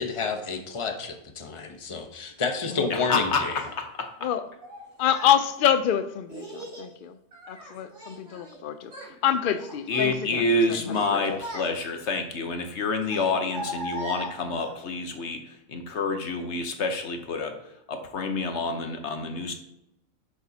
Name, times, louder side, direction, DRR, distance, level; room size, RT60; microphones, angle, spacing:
voice 1, 0.0-3.6, left 4 dB, 25° left, 5 dB, 0.8 m, -30 dB
voice 2, 2.9-4.3 9.9-15.4 15.7-17.5 17.9-19.5, left 3 dB, 55° left, 6 dB, 1.2 m, -28 dB
Child speech kid speaking, 3.5-3.7 4.6-5.4 6.3-6.9 7.3-8.6 8.8-9.1 9.6-10.2 10.6-12.0 13.0-14.7, right 1 dB, 85° right, 3.5 m, -39 dB
voice 3, 5.0-7.1 7.5-8.9 9.2-11.4, left 9 dB, 80° left, 10 dB, 0.4 m, -26 dB
10.0 x 7.1 x 2.8 m, 0.85 s
omnidirectional pair, 1.5 m